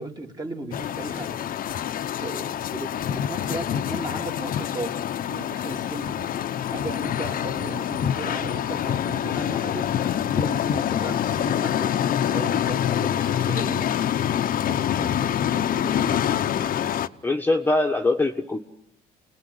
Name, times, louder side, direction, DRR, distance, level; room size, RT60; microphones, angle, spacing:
voice 1, 0.0-1.4 2.2-6.3 6.7-9.9 10.2-11.9 12.3-13.9 14.4-16.4, right 2 dB, 25° right, 3 dB, 3.1 m, -36 dB
sound 1, 0.7-17.1, left 10 dB, 55° left, 1.0 m, -26 dB
voice 2, 17.2-18.6, left 2 dB, 10° left, 3 dB, 1.5 m, -23 dB
30.0 x 19.5 x 9.7 m, 0.80 s
cardioid pair, 110°, 17 cm